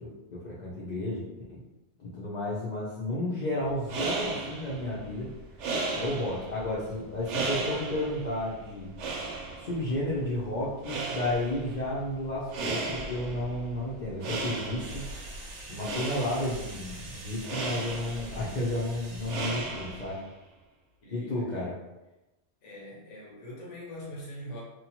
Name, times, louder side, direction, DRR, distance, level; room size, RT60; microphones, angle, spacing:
voice 1, 0.0-1.6 2.0-5.3 5.9-8.9 9.6-15.1 15.7-20.2 21.1-21.8, left 1 dB, 50° left, -7 dB, 0.6 m, -32 dB
sound 1, 3.7-20.3, right 3 dB, 85° right, 0.9 m, -36 dB
sound 2, 14.8-20.1, right 2 dB, 55° right, 0.8 m, -46 dB
voice 2, 21.0-21.7 22.6-24.6, equal, 85° left, -4 dB, 1.1 m, -43 dB
2.8 x 2.2 x 2.9 m, 1.0 s
omnidirectional pair, 1.2 m